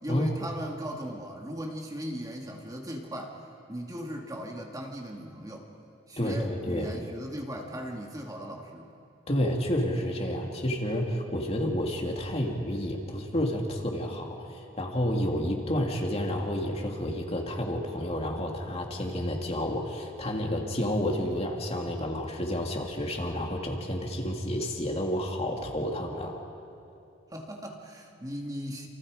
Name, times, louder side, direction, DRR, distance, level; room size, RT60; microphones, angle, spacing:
voice 1, 0.0-3.4 3.7-5.7 6.1-8.9 27.3-28.9, equal, 20° right, 0 dB, 2.3 m, -38 dB
voice 2, 6.2-6.9 9.3-26.4, equal, 35° left, 0 dB, 2.7 m, -30 dB
29.5 x 28.5 x 5.1 m, 2.7 s
head